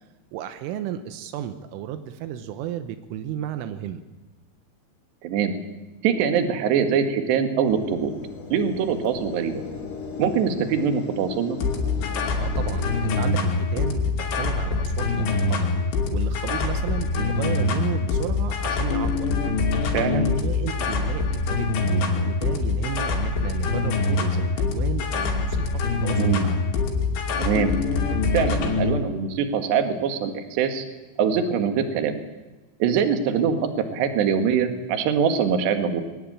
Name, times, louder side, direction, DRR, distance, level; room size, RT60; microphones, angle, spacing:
voice 1, 0.3-4.0 12.4-15.7 16.1-19.3 19.8-26.6, right 10 dB, 85° right, 9 dB, 3.6 m, -33 dB
voice 2, 6.0-8.1 8.5-9.6 10.2-11.6 19.9-20.3 26.2-26.5 27.4-27.7 28.3-30.9 31.2-32.2 32.8-33.6 33.9-36.0, right 7 dB, 65° right, 7 dB, 3.8 m, -23 dB
sound 1, 7.6-13.3, left 6 dB, 50° left, 5.0 m, -37 dB
sound 2, 11.6-28.9, left 3 dB, 75° left, 5.1 m, -24 dB
23.0 x 18.5 x 8.8 m, 1.2 s
omnidirectional pair, 5.6 m